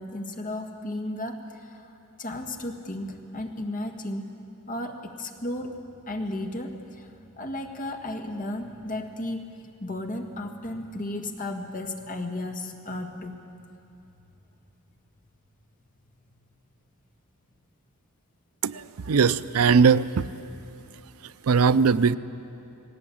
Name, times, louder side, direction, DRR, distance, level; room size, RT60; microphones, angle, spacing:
voice 1, 0.0-1.9 2.2-4.3 4.7-5.7 6.1-9.5 9.8-13.4, left 1 dB, 40° left, 3 dB, 1.7 m, -34 dB
voice 2, 19.1-20.3 21.5-22.1, right 5 dB, 85° right, 16 dB, 0.5 m, -19 dB
19.5 x 18.0 x 8.6 m, 2.7 s
head